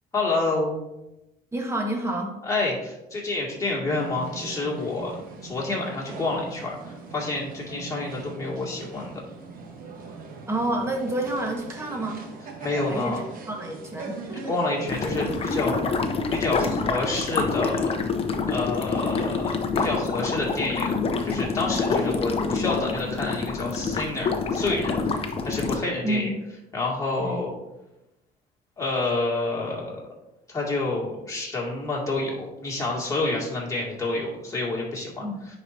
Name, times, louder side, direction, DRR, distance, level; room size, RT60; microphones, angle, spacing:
voice 1, 0.1-0.9 2.4-5.2 5.4-9.2 12.6-13.2 14.3-15.8 16.3-17.9 18.5-26.3 26.7-27.5 28.8-30.0 30.5-35.2, left 2 dB, 20° left, -4 dB, 2.3 m, -28 dB
voice 2, 1.5-2.4 10.5-12.3 12.9-14.5 26.0-26.4 27.2-27.4 35.2-35.5, right 1 dB, 15° right, 1 dB, 1.4 m, -29 dB
sound 1, 3.9-15.4, right 3 dB, 60° right, 1.2 m, -40 dB
sound 2, 14.9-25.8, left 4 dB, 35° left, 0.7 m, -27 dB
9.8 x 4.3 x 2.7 m, 0.93 s
cardioid pair, 110°, 17 cm